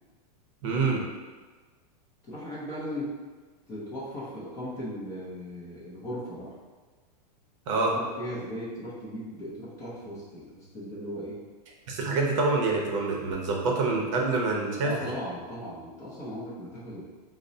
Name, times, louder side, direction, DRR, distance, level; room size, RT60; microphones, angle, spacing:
voice 1, 0.6-1.0 7.7-7.9 11.9-14.9, right 3 dB, 50° right, -1 dB, 0.7 m, -26 dB
voice 2, 2.2-3.2 3.7-6.5 7.7-11.4 12.0-12.1 14.8-17.0, equal, 15° left, -7 dB, 0.5 m, -37 dB
5.0 x 2.0 x 2.6 m, 1.4 s
supercardioid pair, 170°, 21 cm